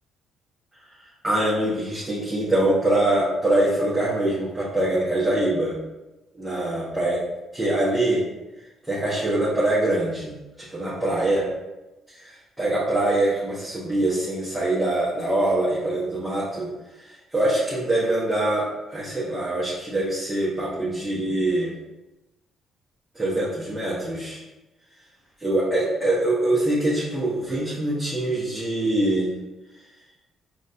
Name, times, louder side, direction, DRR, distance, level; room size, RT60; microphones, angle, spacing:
voice 1, 1.2-5.7 6.4-7.2 7.5-8.2 8.9-10.4 10.7-11.5 12.2-16.7 17.3-21.7 23.1-24.4 25.4-29.3, right 1 dB, 15° right, -8 dB, 1.3 m, -23 dB
4.0 x 2.6 x 3.4 m, 1.0 s
supercardioid pair, 55°, 0 cm